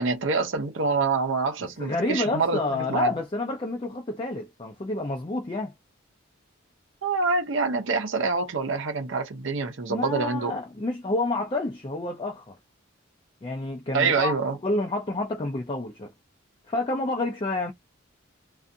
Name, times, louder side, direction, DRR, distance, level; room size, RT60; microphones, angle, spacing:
voice 1, 0.0-3.1 7.0-10.6 13.9-14.6, right 4 dB, 65° right, 0.6 m, -26 dB
voice 2, 1.8-5.7 9.9-12.5 13.4-14.3 14.6-16.1 16.7-17.7, left 2 dB, 25° left, 0.4 m, -29 dB
2.5 x 2.3 x 2.6 m
head